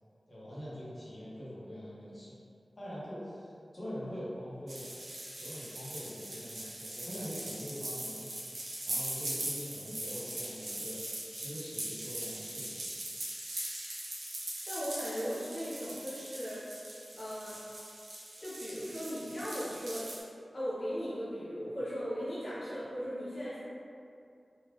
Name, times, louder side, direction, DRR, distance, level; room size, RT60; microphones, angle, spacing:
voice 1, 0.3-2.4 2.8-4.9 5.4-8.4 8.9-12.8, equal, 50° left, -10 dB, 1.0 m, -43 dB
sound 1, 4.7-20.2, right 1 dB, 85° right, 0.6 m, -41 dB
voice 2, 14.7-16.6 17.1-17.6 18.4-20.1 20.5-23.6, equal, 75° left, -12 dB, 0.9 m, -37 dB
2.7 x 2.4 x 3.3 m, 2.5 s
wide cardioid pair, 55°, 0 cm